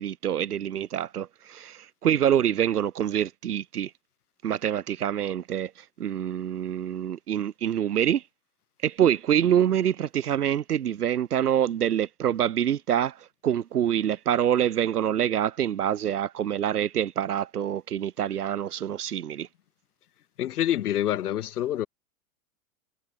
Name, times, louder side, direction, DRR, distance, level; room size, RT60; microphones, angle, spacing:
voice 1, 0.0-3.9 4.4-8.2 8.8-19.5, right 10 dB, 90° right, 5.1 m, -26 dB
voice 2, 20.4-21.9, left 12 dB, 85° left, 2.0 m, -26 dB
hypercardioid pair, 140°, 44 cm